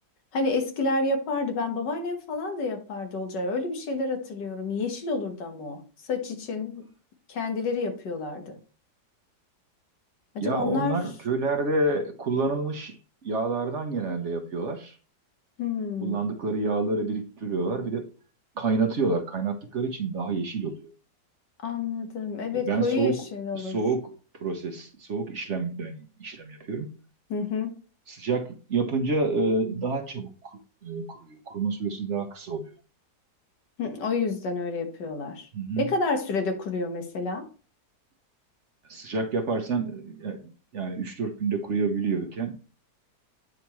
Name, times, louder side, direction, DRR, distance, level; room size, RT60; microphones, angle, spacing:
voice 1, 0.3-5.8 6.1-6.8 7.3-8.6 10.4-11.0 15.6-16.3 21.6-23.8 27.3-27.7 33.8-35.5 35.8-37.5, left 3 dB, 85° left, 5 dB, 1.9 m, -29 dB
voice 2, 10.4-13.0 13.2-15.0 16.0-18.1 18.6-20.9 22.6-23.2 23.5-24.1 24.4-26.9 28.1-32.7 35.5-35.9 38.9-40.4 40.7-42.6, right 3 dB, 50° right, 4 dB, 1.0 m, -28 dB
9.2 x 4.9 x 3.1 m, 0.37 s
omnidirectional pair, 1.8 m